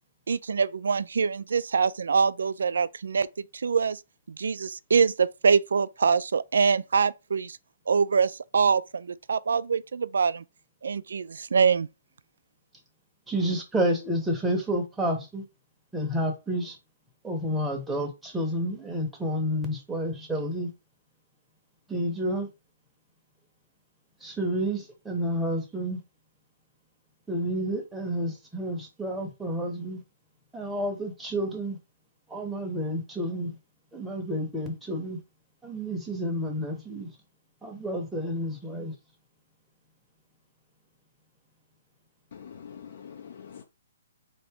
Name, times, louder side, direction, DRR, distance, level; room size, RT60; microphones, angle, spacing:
voice 1, 0.3-3.3 3.5-4.0 4.3-7.6 7.9-10.4 10.8-11.9, right 5 dB, 80° right, 0.3 m, -24 dB
voice 2, 13.3-15.4 15.9-16.8 17.2-20.7 21.9-22.5 24.2-26.0 27.3-30.0 30.5-31.8 32.3-33.6 33.9-35.2 35.6-37.1 37.6-38.9, equal, 5° right, 0.9 m, -30 dB
voice 3, 42.3-43.6, left 7 dB, 55° left, 0.7 m, -44 dB
3.8 x 2.9 x 3.5 m
hypercardioid pair, 160°, 0 cm